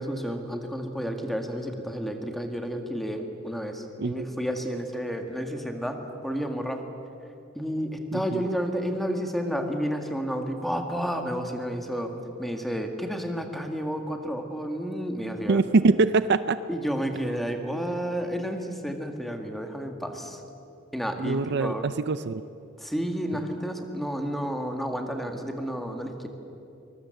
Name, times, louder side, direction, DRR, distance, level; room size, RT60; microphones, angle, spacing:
voice 1, 0.0-6.0 6.2-6.8 7.5-12.1 12.4-15.6 16.7-20.4 20.9-21.8 22.8-26.3, equal, ahead, 4 dB, 1.9 m, -31 dB
voice 2, 8.1-8.4 15.5-16.6 21.2-22.4, right 3 dB, 55° right, 13 dB, 0.5 m, -23 dB
23.5 x 21.0 x 7.8 m, 2.8 s
head